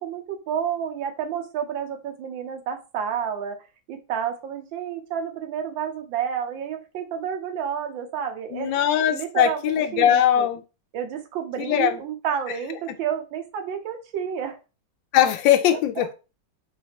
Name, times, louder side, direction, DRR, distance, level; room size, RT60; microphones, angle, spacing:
voice 1, 0.0-3.6 3.9-8.8 9.1-10.5 10.9-14.6 15.7-16.1, right 8 dB, 80° right, 4 dB, 1.5 m, -30 dB
voice 2, 8.5-10.6 11.6-12.0 15.1-16.1, left 10 dB, 80° left, 8 dB, 1.2 m, -20 dB
4.7 x 3.2 x 2.9 m, 0.31 s
omnidirectional pair, 2.1 m